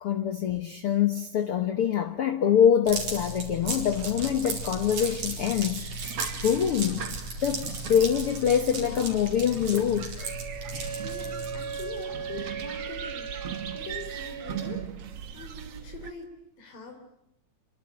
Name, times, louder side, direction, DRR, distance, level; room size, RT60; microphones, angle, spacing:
voice 1, 0.0-7.1 7.4-10.3, left 9 dB, 55° left, 1.8 m, -25 dB
sound 1, 2.9-12.0, right 3 dB, 90° right, 6.3 m, -36 dB
sound 2, 3.6-16.1, right 8 dB, 55° right, 2.2 m, -40 dB
Wind instrument woodwind instrument, 10.2-14.9, right 7 dB, 75° right, 3.1 m, -38 dB
voice 2, 10.6-13.5 13.7-14.9 15.3-16.3 16.6-17.0, left 5 dB, 80° left, 5.2 m, -43 dB
27.5 x 24.5 x 8.8 m
omnidirectional pair, 3.8 m